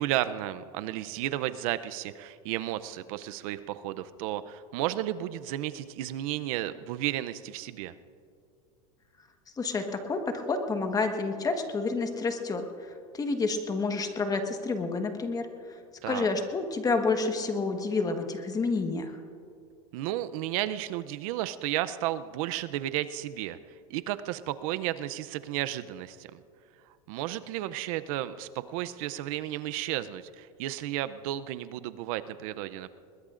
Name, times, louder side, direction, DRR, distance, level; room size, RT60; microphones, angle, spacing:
voice 1, 0.0-7.9 16.0-16.3 19.9-23.6 23.9-26.4 27.1-32.9, right 13 dB, 65° right, 13 dB, 0.6 m, -33 dB
voice 2, 9.6-12.6 13.1-15.5 16.1-19.2, left 3 dB, 20° left, 5 dB, 1.3 m, -29 dB
21.5 x 21.0 x 2.5 m, 2.5 s
supercardioid pair, 130°, 19 cm